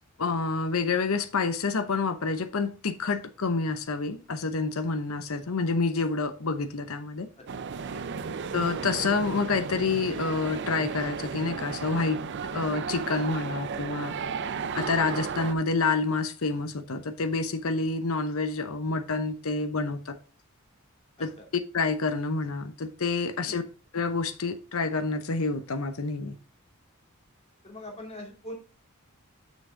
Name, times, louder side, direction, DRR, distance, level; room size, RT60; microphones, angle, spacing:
voice 1, 0.2-7.3 8.5-12.2 12.5-14.2 14.7-20.2 21.2-23.6 23.9-26.4, left 4 dB, 80° left, 0.8 m, -28 dB
sound 1, 7.5-15.5, right 5 dB, 55° right, 0.5 m, -34 dB
voice 2, 7.6-8.3 23.4-23.6 27.6-28.5, left 1 dB, 30° left, 2.7 m, -43 dB
7.3 x 6.3 x 3.8 m
head